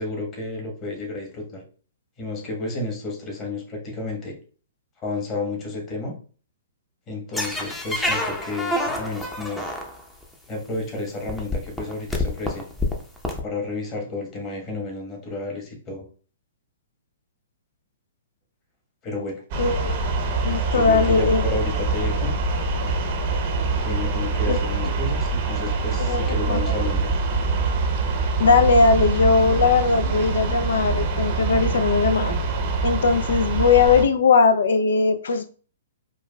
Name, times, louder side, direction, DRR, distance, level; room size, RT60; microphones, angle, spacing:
voice 1, 0.0-1.6 2.2-4.4 5.0-6.1 7.1-9.7 10.5-12.6 13.4-16.1 19.0-19.4 20.7-22.3 23.8-27.1, left 2 dB, 30° left, 1 dB, 1.2 m, -31 dB
sound 1, 7.3-10.2 11.0-11.1 11.3-13.4, left 1 dB, 5° left, 0.6 m, -27 dB
sound 2, 19.5-34.1, right 3 dB, 45° right, 0.7 m, -24 dB
voice 2, 19.6-19.9 20.4-21.4 26.1-26.6 28.4-32.3 32.8-35.4, left 4 dB, 75° left, 9 dB, 0.3 m, -19 dB
4.8 x 2.3 x 2.2 m, 0.40 s
hypercardioid pair, 125°, 0 cm